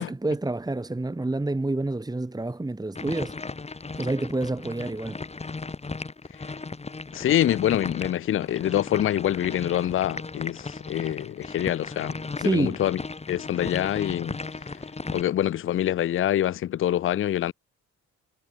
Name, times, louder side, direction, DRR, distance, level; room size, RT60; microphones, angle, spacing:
voice 1, 0.0-3.3 4.0-5.2 12.4-12.8, right 2 dB, 15° right, 2.5 m, -28 dB
sound 1, 2.9-15.2, left 3 dB, 20° left, 2.2 m, -36 dB
voice 2, 7.1-13.0 13.3-14.4 15.1-17.5, left 12 dB, 45° left, 0.5 m, -25 dB
cardioid pair, 90°, 30 cm